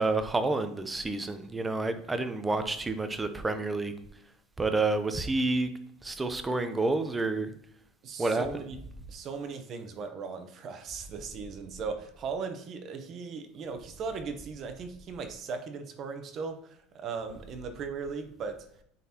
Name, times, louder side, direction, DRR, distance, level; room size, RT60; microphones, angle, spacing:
voice 1, 0.0-3.9 4.6-5.7 6.0-7.5 8.2-8.5, right 3 dB, 10° right, 9 dB, 0.6 m, -29 dB
voice 2, 8.0-8.8 9.1-18.7, right 5 dB, 40° right, 7 dB, 0.9 m, -38 dB
9.3 x 4.0 x 2.9 m, 0.70 s
cardioid pair, 145°, 0 cm